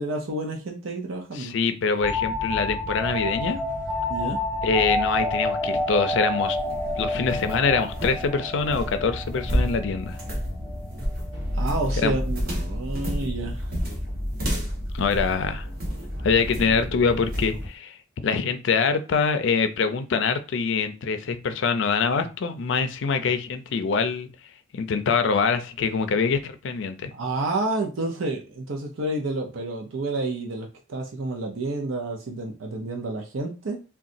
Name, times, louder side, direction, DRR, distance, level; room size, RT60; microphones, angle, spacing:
voice 1, 0.0-1.5 4.1-4.4 11.5-13.7 27.1-33.8, right 2 dB, 85° right, 1 dB, 0.6 m, -29 dB
voice 2, 1.4-3.6 4.6-6.6 7.0-10.2 12.0-12.1 14.9-15.7 16.2-18.0 18.2-24.3 24.7-27.1, left 5 dB, 65° left, 9 dB, 0.4 m, -24 dB
sound 1, 2.0-11.4, left 1 dB, 10° right, 0.5 m, -29 dB
sound 2, 2.0-17.7, equal, 70° right, 1.2 m, -34 dB
sound 3, 6.4-16.1 16.5-16.9 17.3-17.6, equal, 50° right, 1.0 m, -31 dB
3.9 x 2.2 x 2.5 m, 0.33 s
head